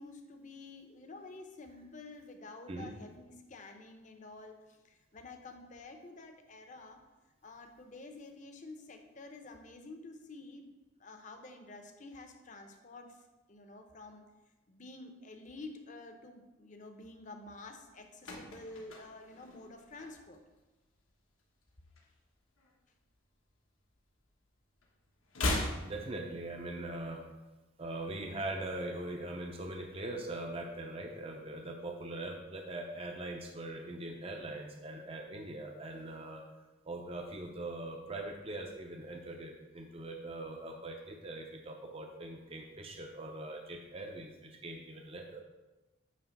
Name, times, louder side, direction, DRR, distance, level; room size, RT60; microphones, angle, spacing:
voice 1, 0.0-4.6 4.8-7.0 7.4-10.7 11.0-13.1 13.5-14.2 14.7-20.4, left 2 dB, 40° left, 5 dB, 0.8 m, -49 dB
sound 1, 17.8-20.5 20.8-21.1 21.4-22.8 23.1-24.5 24.7-26.8 27.1-27.2, left 1 dB, 85° left, 1.3 m, -39 dB
voice 2, 25.8-27.2 27.8-36.4 36.8-45.4, right 2 dB, 30° right, 3 dB, 0.6 m, -41 dB
9.3 x 3.1 x 5.9 m, 1.1 s
head